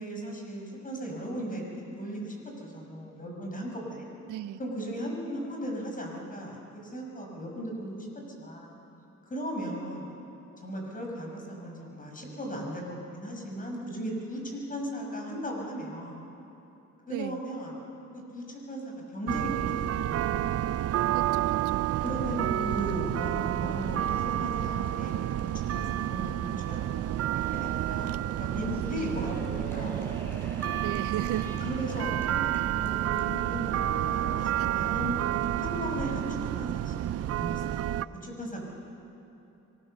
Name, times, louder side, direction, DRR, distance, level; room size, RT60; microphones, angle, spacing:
voice 1, 0.0-1.7 2.0-4.1 4.6-8.1 8.4-8.7 9.2-10.2 10.6-16.2 17.1-17.8 18.1-20.5 22.0-25.2 25.7-30.0 31.6-35.2 35.6-37.0 37.4-38.6, equal, 25° left, 0 dB, 6.2 m, -37 dB
voice 2, 4.3-4.6 17.1-17.4 21.1-21.9 28.9-29.3 30.8-31.6, right 12 dB, 90° right, 13 dB, 0.9 m, -35 dB
sound 1, 19.3-38.1, right 12 dB, 55° right, 0.5 m, -30 dB
sound 2, 23.8-35.5, right 1 dB, 5° left, 6.8 m, -48 dB
25.0 x 19.5 x 6.7 m, 2.9 s
cardioid pair, 90°, 30 cm